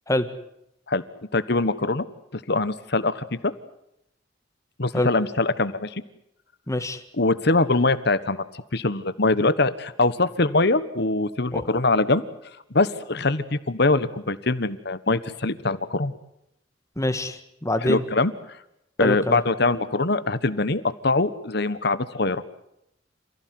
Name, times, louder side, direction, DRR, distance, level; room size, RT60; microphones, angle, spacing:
voice 1, 1.3-2.0 2.5-3.5 4.8-6.0 7.2-8.4 8.7-12.2 12.7-16.1 17.8-18.3 19.0-22.4, left 3 dB, 60° left, 14 dB, 1.3 m, -23 dB
voice 2, 6.7-7.0 11.5-11.6 17.0-18.0 19.0-19.4, left 1 dB, 15° left, 9 dB, 1.7 m, -25 dB
28.0 x 16.0 x 9.5 m, 0.80 s
head